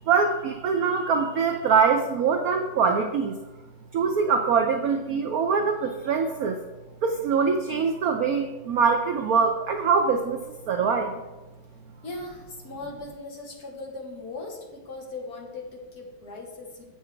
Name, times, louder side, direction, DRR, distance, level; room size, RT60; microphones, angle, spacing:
voice 1, 0.1-3.4 3.9-6.6 7.0-10.4 10.7-11.2, right 5 dB, 75° right, 5 dB, 0.8 m, -23 dB
voice 2, 12.0-16.8, left 2 dB, 55° left, 0 dB, 1.7 m, -39 dB
8.1 x 6.1 x 4.5 m, 1.1 s
omnidirectional pair, 2.2 m